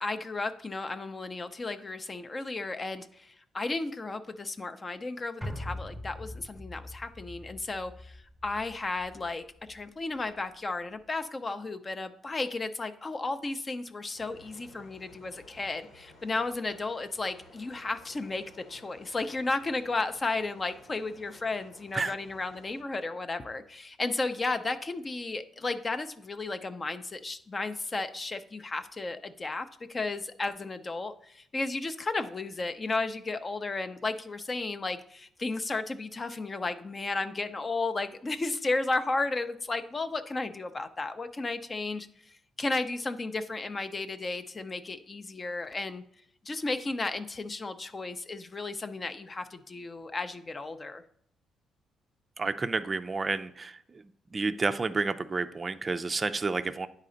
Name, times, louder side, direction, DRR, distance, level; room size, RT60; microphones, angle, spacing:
voice 1, 0.0-9.4 9.7-46.0 46.4-51.0, left 3 dB, 30° left, 9 dB, 0.5 m, -34 dB
sound 1, 5.4-9.9 10.2-10.3, left 1 dB, 5° left, 1.0 m, -42 dB
sound 2, 14.1-22.8, left 2 dB, 90° left, 1.6 m, -55 dB
voice 2, 52.4-54.0 54.3-56.9, right 3 dB, 30° right, 10 dB, 0.4 m, -30 dB
9.8 x 4.2 x 3.8 m, 0.66 s
cardioid pair, 90°, 0 cm